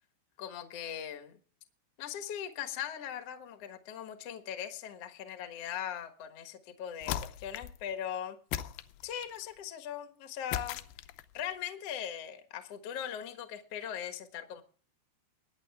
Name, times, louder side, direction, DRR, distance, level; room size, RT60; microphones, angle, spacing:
voice 1, 0.4-1.4 2.0-8.4 9.0-10.8 11.3-14.6, left 9 dB, 65° left, 7 dB, 1.6 m, -40 dB
sound 1, 7.0-7.8 8.5-9.4 10.5-11.4, left 11 dB, 80° left, 2.4 m, -37 dB
23.0 x 9.6 x 3.6 m, 0.41 s
omnidirectional pair, 5.1 m